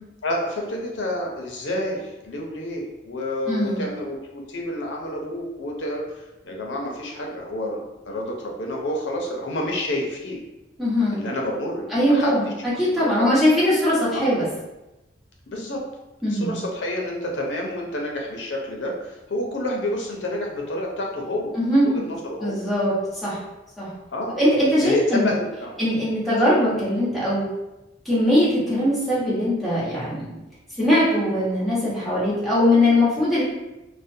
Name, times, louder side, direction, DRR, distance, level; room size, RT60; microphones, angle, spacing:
voice 1, 0.2-10.4 11.1-12.5 12.9-13.3 14.1-14.3 15.5-15.8 16.3-22.6 24.1-24.4 24.8-25.7 31.4-31.5, left 1 dB, 80° left, 0 dB, 0.6 m, -29 dB
voice 2, 3.5-3.8 10.8-11.2 11.9-12.5 12.8-14.4 16.2-16.6 21.6-22.0 22.4-23.4 23.8-23.9 24.3-25.3 25.8-27.5 28.0-30.3 30.8-33.4, left 1 dB, ahead, -11 dB, 0.9 m, -21 dB
2.4 x 2.1 x 2.6 m, 0.99 s
head